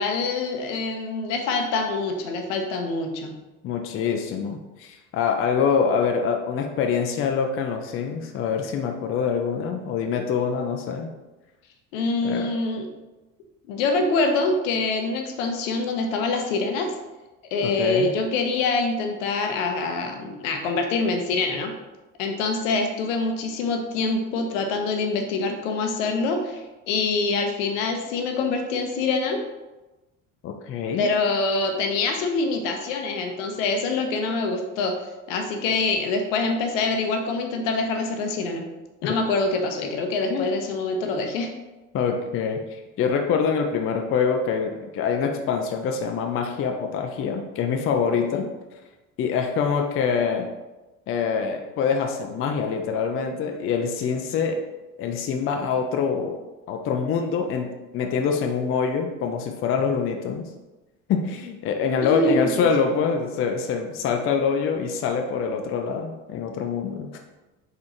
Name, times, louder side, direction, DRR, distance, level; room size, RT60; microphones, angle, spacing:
voice 1, 0.0-3.3 11.9-12.8 13.7-16.9 17.5-21.7 22.2-29.4 31.0-34.9 35.3-38.6 39.0-41.5 48.1-48.4 62.0-62.7, left 3 dB, 65° left, 4 dB, 0.7 m, -25 dB
voice 2, 3.6-11.1 12.2-12.5 17.6-18.1 30.4-31.1 39.0-39.1 40.3-40.5 41.9-42.6 43.0-48.5 49.2-50.5 51.1-54.6 55.0-56.4 56.7-60.5 61.1-67.2, left 6 dB, 35° left, 3 dB, 0.5 m, -25 dB
4.0 x 3.6 x 2.9 m, 1.1 s
figure-of-eight pair, 60°, 41 cm